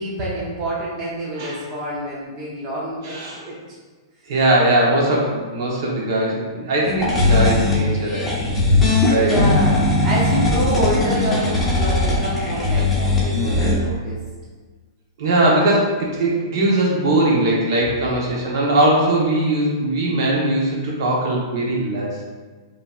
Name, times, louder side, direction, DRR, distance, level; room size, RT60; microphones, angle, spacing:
voice 1, 0.0-3.6 9.2-14.2, equal, 25° right, -7 dB, 0.8 m, -27 dB
voice 2, 3.0-3.4 4.3-8.3 9.1-9.3 10.5-10.8 15.2-22.2, right 1 dB, 60° right, -3 dB, 1.2 m, -20 dB
sound 1, 6.9-13.7, left 2 dB, 5° left, 0.9 m, -19 dB
5.5 x 3.0 x 2.5 m, 1.4 s
hypercardioid pair, 160°, 2 cm